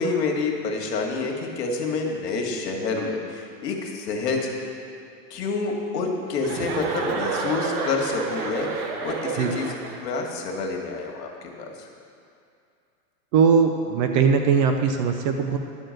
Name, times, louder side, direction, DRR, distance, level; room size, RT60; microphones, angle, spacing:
voice 1, 0.0-4.5 5.3-8.7 9.0-9.7 10.0-11.3 11.6-11.9, left 4 dB, 80° left, 1 dB, 1.9 m, -28 dB
Chuckle chortle, 6.4-10.2, right 5 dB, 65° right, 1.2 m, -30 dB
voice 2, 13.3-15.6, right 6 dB, 30° right, 5 dB, 0.4 m, -20 dB
11.0 x 4.6 x 7.7 m, 2.5 s
supercardioid pair, 135°, 48 cm